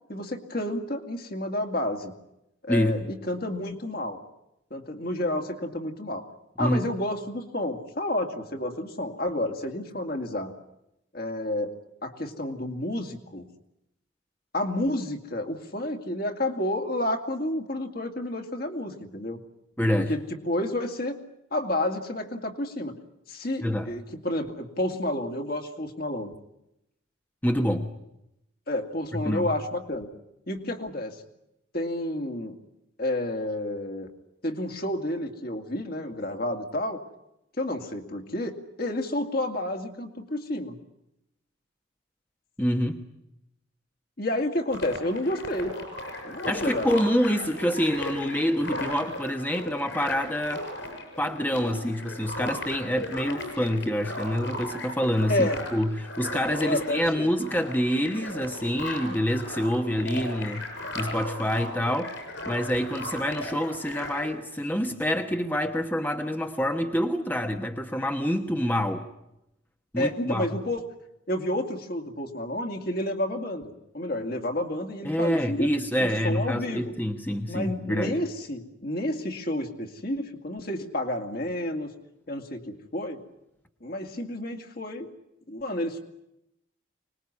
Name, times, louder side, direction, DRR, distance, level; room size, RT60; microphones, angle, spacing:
voice 1, 0.1-2.1 2.6-4.2 4.7-6.3 6.6-10.6 11.1-11.7 12.0-13.5 14.5-19.4 20.1-21.2 21.5-23.0 23.3-26.3 27.5-27.7 28.7-30.1 30.5-31.2 31.7-32.6 33.0-34.1 34.4-37.0 37.6-40.8 44.2-45.7 46.2-47.0 55.3-55.7 56.6-57.3 70.0-70.8 71.3-75.7 76.0-76.9 77.5-81.9 82.3-83.2 83.8-85.1 85.5-86.0, left 1 dB, 50° left, 4 dB, 2.5 m, -30 dB
voice 2, 19.8-20.1 23.6-23.9 27.4-27.9 29.1-29.5 42.6-43.0 46.5-50.7 51.2-60.7 60.9-62.2 62.5-69.1 69.9-70.5 75.0-78.2, equal, 10° left, 5 dB, 1.1 m, -26 dB
sound 1, 44.7-64.3, left 1 dB, 70° left, 7.3 m, -37 dB
25.0 x 20.5 x 9.8 m, 0.86 s
head